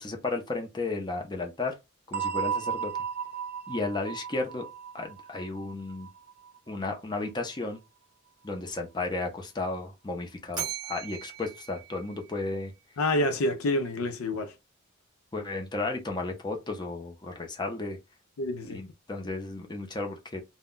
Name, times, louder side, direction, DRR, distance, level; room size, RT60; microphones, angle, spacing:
voice 1, 0.0-1.7 2.1-2.9 3.7-4.6 4.9-6.1 6.7-7.8 8.4-12.7 15.3-18.0 18.6-20.4, left 3 dB, 20° left, 0.6 m, -33 dB
sound 1, 2.1-6.8, right 7 dB, 50° right, 0.4 m, -35 dB
Bell, 10.5-12.8, right 8 dB, 20° right, 0.9 m, -39 dB
voice 2, 13.0-14.5 18.4-18.8, left 1 dB, 85° left, 0.5 m, -28 dB
2.2 x 2.0 x 3.6 m
head